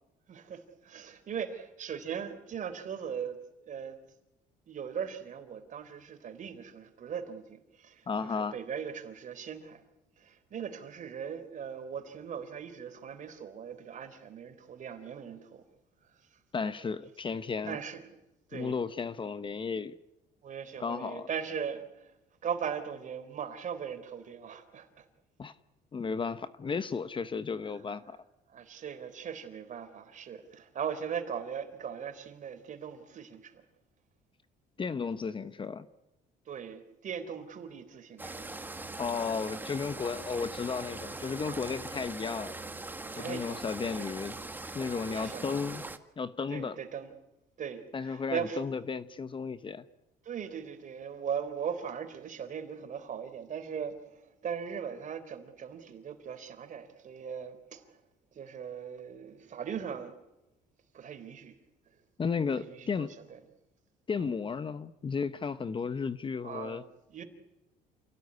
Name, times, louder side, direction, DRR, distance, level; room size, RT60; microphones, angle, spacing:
voice 1, 0.3-3.4 3.7-4.0 4.7-9.8 10.2-15.6 16.0-16.7 17.7-18.1 18.5-18.8 20.4-22.1 22.4-25.1 28.5-33.6 36.5-38.6 40.0-40.1 41.4-41.7 43.0-44.2 44.9-45.7 46.5-47.1 47.6-48.6 50.2-58.0 58.3-60.1 60.9-61.6 62.5-63.4 64.2-64.3 66.4-67.2, right 7 dB, 50° right, 3.9 m, -39 dB
voice 2, 8.1-8.5 16.5-17.8 18.5-19.9 20.8-21.3 25.4-25.5 25.9-28.2 34.8-35.9 39.0-42.6 43.2-44.4 44.7-45.9 46.2-46.8 47.9-49.8 62.2-63.1 64.1-66.8, left 5 dB, 30° left, 1.1 m, -34 dB
sound 1, 38.2-46.0, right 2 dB, 10° right, 1.8 m, -41 dB
28.5 x 17.5 x 9.7 m
cardioid pair, 110°, 17 cm